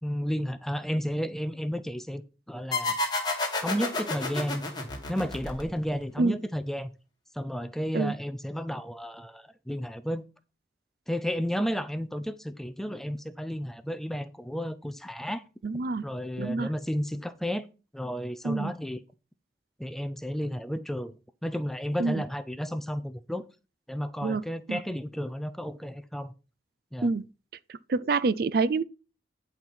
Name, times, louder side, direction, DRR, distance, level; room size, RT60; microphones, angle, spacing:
voice 1, 0.0-2.2 2.5-3.0 3.6-4.7 5.1-6.9 7.4-10.2 11.1-15.4 16.0-17.6 17.9-19.0 19.8-21.2 21.4-23.5 23.9-26.3 26.9-27.1, equal, ahead, 0.5 m, -32 dB
sound 1, 2.7-6.0, left 2 dB, 20° left, 2.2 m, -30 dB
voice 2, 15.6-16.0 16.4-16.7 18.4-18.7 22.0-22.2 24.2-24.4 24.7-24.8 27.0-27.3 27.7-28.8, right 3 dB, 55° right, 0.4 m, -27 dB
10.5 x 4.5 x 5.6 m
head